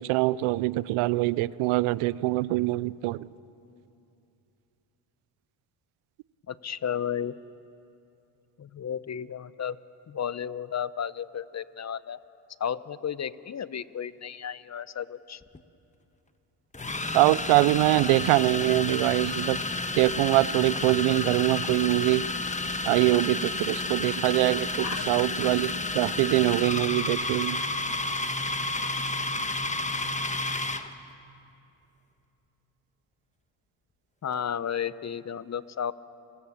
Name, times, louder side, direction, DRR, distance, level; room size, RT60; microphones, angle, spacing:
voice 1, 0.0-3.3 17.1-19.6 20.0-22.3 22.8-27.6, right 18 dB, 90° right, 21 dB, 0.6 m, -24 dB
voice 2, 6.5-7.4 8.6-9.8 10.1-12.2 12.6-15.4 24.8-25.1 34.2-35.9, left 8 dB, 35° left, 17 dB, 0.7 m, -33 dB
sound 1, 15.4-15.6 16.7-30.9, left 2 dB, 15° left, 1.2 m, -31 dB
30.0 x 16.0 x 7.3 m, 2.7 s
cardioid pair, 75°, 49 cm